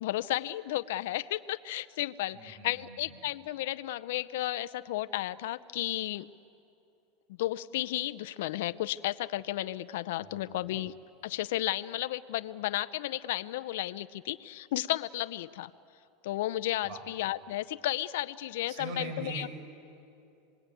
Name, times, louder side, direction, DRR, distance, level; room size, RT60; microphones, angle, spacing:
voice 1, 0.0-6.3 7.4-10.9 11.2-15.7 16.2-19.5, left 15 dB, 75° left, 13 dB, 0.6 m, -33 dB
voice 2, 2.3-3.1 10.2-10.7 16.8-17.0 18.7-19.5, right 3 dB, 65° right, 4 dB, 7.4 m, -42 dB
26.5 x 21.0 x 9.0 m, 2.7 s
supercardioid pair, 125°, 0 cm